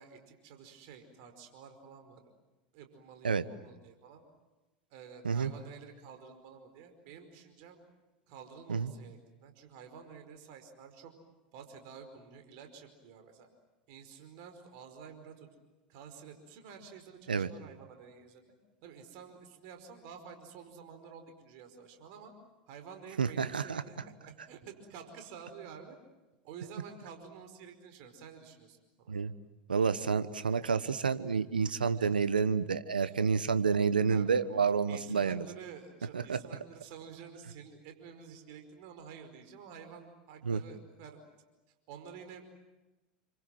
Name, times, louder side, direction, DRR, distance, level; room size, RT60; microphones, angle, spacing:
voice 1, 0.0-2.2 2.7-4.2 4.9-7.8 8.3-11.1 11.5-13.5 13.9-15.5 15.9-18.4 18.8-22.3 22.7-26.0 26.4-29.1 31.4-31.5 32.0-32.2 33.0-33.1 34.1-34.3 34.9-41.2 41.9-42.4, right 6 dB, 55° right, 6 dB, 5.1 m, -50 dB
voice 2, 23.2-23.8 29.1-29.3 29.7-35.4 36.1-36.4 40.4-40.6, right 5 dB, 85° right, 13 dB, 1.2 m, -29 dB
29.0 x 25.5 x 7.7 m, 1.1 s
hypercardioid pair, 90°, 5 cm